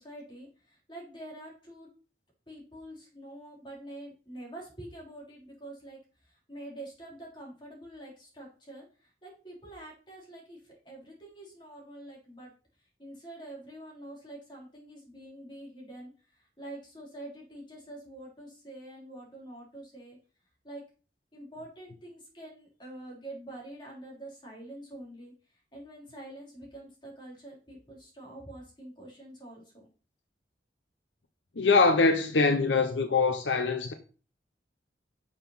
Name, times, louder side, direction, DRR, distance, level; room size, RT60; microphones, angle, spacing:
voice 1, 0.0-1.9 2.5-12.5 13.0-20.2 20.6-20.9 21.3-25.3 25.7-29.9, right 1 dB, 25° left, 3.5 m, -46 dB
voice 2, 31.6-33.9, left 4 dB, 80° left, 0.8 m, -23 dB
6.7 x 5.7 x 5.6 m
head